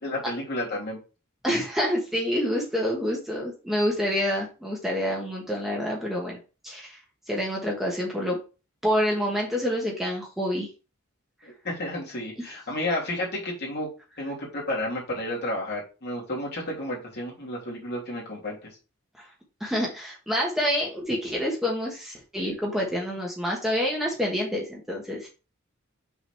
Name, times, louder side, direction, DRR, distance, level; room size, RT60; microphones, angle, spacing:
voice 1, 0.0-1.0 11.4-13.9 14.2-18.7, left 1 dB, 55° left, -4 dB, 2.9 m, -31 dB
voice 2, 1.4-6.4 6.6-7.0 7.3-8.4 8.8-10.7 12.4-12.5 19.2-19.3 19.6-25.3, equal, ahead, -2 dB, 1.4 m, -27 dB
5.9 x 4.0 x 4.5 m, 0.33 s
head